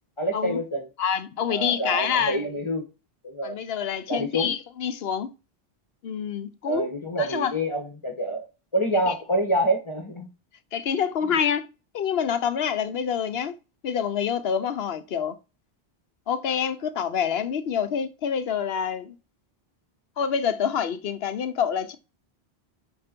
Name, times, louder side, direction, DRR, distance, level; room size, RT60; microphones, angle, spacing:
voice 1, 0.2-0.9 1.5-2.8 3.2-3.6 4.1-4.5 6.6-8.4 8.7-10.3, right 1 dB, 30° left, 1.2 m, -26 dB
voice 2, 1.0-2.4 3.4-5.3 6.0-6.9 7.2-7.5 9.1-9.2 10.7-11.7 11.9-13.5 13.8-15.4 16.3-19.1 20.2-22.0, left 7 dB, 70° left, 0.9 m, -27 dB
5.1 x 4.4 x 5.1 m
omnidirectional pair, 1.1 m